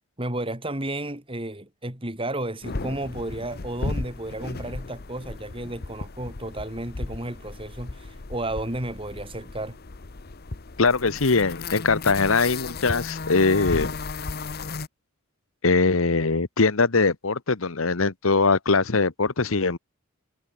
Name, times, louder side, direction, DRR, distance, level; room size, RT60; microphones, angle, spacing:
voice 1, 0.2-9.8, right 1 dB, 25° right, 3.5 m, -32 dB
sound 1, 2.6-14.9, left 3 dB, 45° left, 0.9 m, -35 dB
voice 2, 10.8-13.9 15.6-19.8, left 4 dB, 70° left, 1.2 m, -22 dB
head